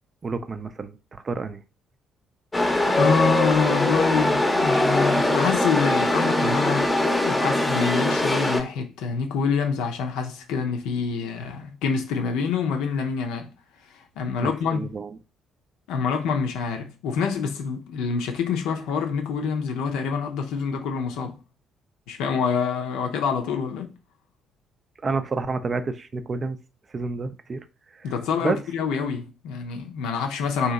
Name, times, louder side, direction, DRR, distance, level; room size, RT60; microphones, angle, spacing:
voice 1, 0.2-1.6 14.4-15.2 25.0-26.6 26.9-27.6 27.9-28.1 28.4-28.6, right 4 dB, 35° right, 0.4 m, -29 dB
Chatter / Subway metro underground, 2.5-8.6, left 1 dB, 15° left, 0.7 m, -22 dB
voice 2, 3.0-13.5 13.9-14.9 15.9-21.4 22.1-23.9 28.0-30.7, left 6 dB, 65° left, 0.5 m, -26 dB
2.9 x 2.7 x 3.7 m
figure-of-eight pair, 45°, 0 cm